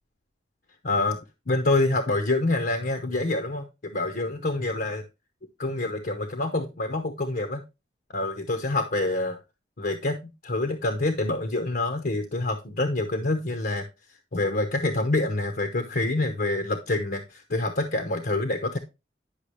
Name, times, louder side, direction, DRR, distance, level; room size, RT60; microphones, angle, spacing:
voice 1, 0.8-1.2 1.5-5.0 5.6-7.6 8.1-9.4 9.8-13.9 14.3-18.8, left 2 dB, 55° left, 6 dB, 0.9 m, -26 dB
10.0 x 5.9 x 3.1 m, 0.25 s
head